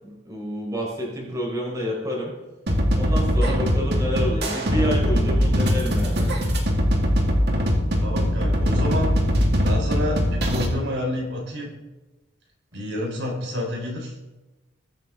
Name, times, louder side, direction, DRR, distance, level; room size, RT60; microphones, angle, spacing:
voice 1, 0.0-2.3 2.9-6.3, equal, 15° right, -4 dB, 4.2 m, -29 dB
sound 1, 2.7-10.7, equal, 55° right, 2.2 m, -21 dB
voice 2, 8.0-9.1 9.6-11.7 12.7-14.1, left 1 dB, 70° right, -1 dB, 4.1 m, -29 dB
21.5 x 9.0 x 3.7 m, 1.1 s
head